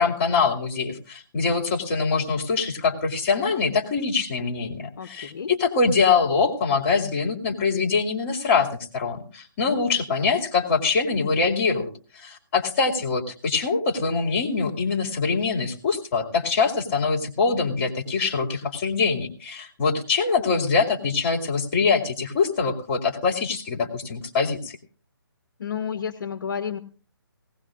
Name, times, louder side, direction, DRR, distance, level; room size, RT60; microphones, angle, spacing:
voice 1, 0.0-8.7 8.9-24.8, left 4 dB, 30° left, 2 dB, 2.5 m, -24 dB
voice 2, 5.0-5.5 25.6-26.8, left 7 dB, 55° left, 10 dB, 0.9 m, -31 dB
18.5 x 17.5 x 2.5 m, 0.39 s
hypercardioid pair, 160°, 13 cm